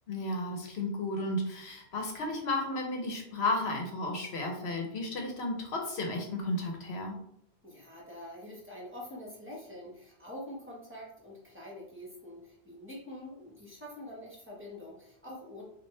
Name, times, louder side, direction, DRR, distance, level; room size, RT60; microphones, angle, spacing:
voice 1, 0.1-7.1, left 2 dB, 75° left, 2 dB, 1.1 m, -33 dB
voice 2, 7.6-15.6, left 1 dB, 10° right, -5 dB, 1.4 m, -45 dB
5.5 x 2.5 x 3.3 m, 0.70 s
omnidirectional pair, 1.1 m